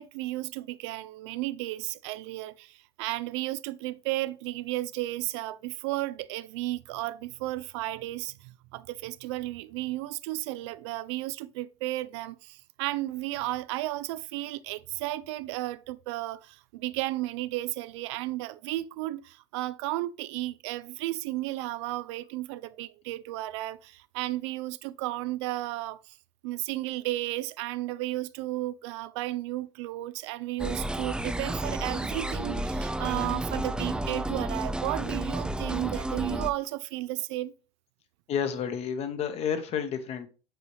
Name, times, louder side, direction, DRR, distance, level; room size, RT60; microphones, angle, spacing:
voice 1, 0.0-26.1 26.4-37.5, right 17 dB, 70° right, 0.4 m, -33 dB
sound 1, 30.6-36.5, right 1 dB, 5° right, 0.4 m, -31 dB
voice 2, 38.3-40.3, left 7 dB, 45° left, 1.1 m, -30 dB
8.0 x 4.0 x 3.1 m
hypercardioid pair, 95°, 15 cm